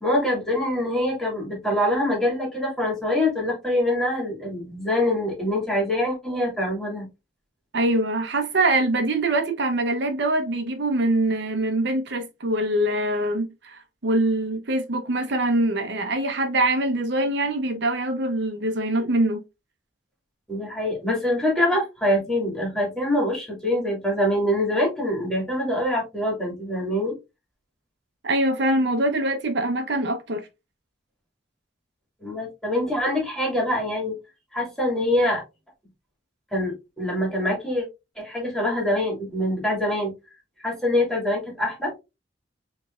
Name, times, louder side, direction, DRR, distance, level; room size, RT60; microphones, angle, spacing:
voice 1, 0.0-7.1 20.5-27.1 32.2-34.1 34.5-35.4 36.5-37.8 38.2-40.1 40.6-41.9, left 1 dB, 5° left, 2.1 m, -24 dB
voice 2, 7.7-19.4 28.2-30.4, right 1 dB, 70° right, 0.8 m, -23 dB
5.1 x 3.1 x 2.4 m
head